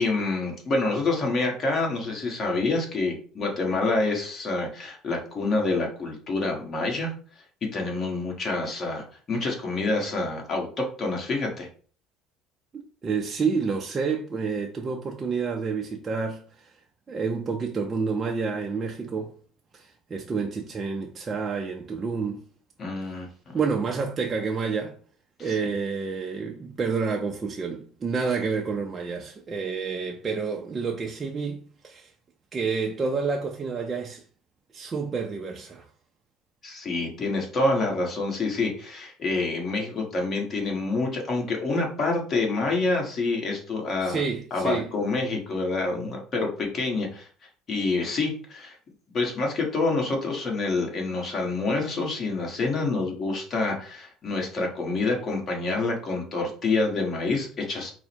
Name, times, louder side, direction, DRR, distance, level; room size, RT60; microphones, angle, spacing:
voice 1, 0.0-7.1 7.7-11.7 22.8-23.6 25.4-25.5 36.6-44.2 44.5-47.3 47.7-48.8 49.1-57.9, left 3 dB, 35° left, 1.3 m, -27 dB
voice 2, 12.7-16.7 17.1-19.3 19.7-22.4 23.5-25.0 25.4-32.1 32.5-34.2 34.7-35.8 44.0-44.9, right 5 dB, 25° right, 0.5 m, -29 dB
4.7 x 2.1 x 4.4 m
cardioid pair, 135°, 0 cm